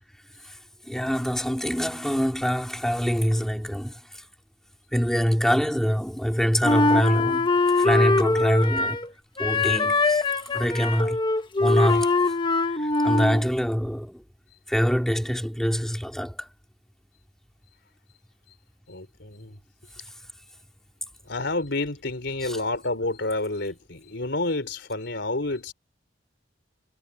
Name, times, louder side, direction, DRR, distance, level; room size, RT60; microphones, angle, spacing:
voice 1, 0.9-4.0 4.9-9.0 9.4-10.2 10.5-11.2 11.6-12.1 12.8-14.2 14.7-16.5 22.4-22.6, equal, ahead, 3.3 m, -25 dB
Wind instrument woodwind instrument, 6.6-9.1 9.4-13.5, left 3 dB, 25° left, 1.2 m, -22 dB
voice 2, 18.9-19.5 21.3-25.7, left 2 dB, 65° left, 4.1 m, -29 dB
head